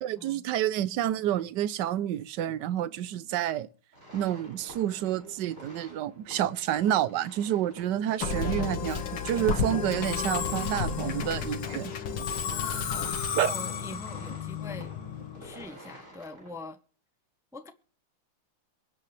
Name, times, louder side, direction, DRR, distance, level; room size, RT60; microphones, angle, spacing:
voice 1, 0.0-3.7 4.1-11.9 13.4-13.5, right 11 dB, 65° right, 1.2 m, -29 dB
sound 1, 3.9-16.5, equal, 35° right, 7.6 m, -49 dB
Musical instrument, 8.2-15.5, left 6 dB, 65° left, 2.0 m, -32 dB
voice 2, 12.4-14.9 15.4-16.8 17.5-17.7, left 2 dB, 5° right, 0.5 m, -43 dB
23.5 x 8.6 x 3.3 m
omnidirectional pair, 2.3 m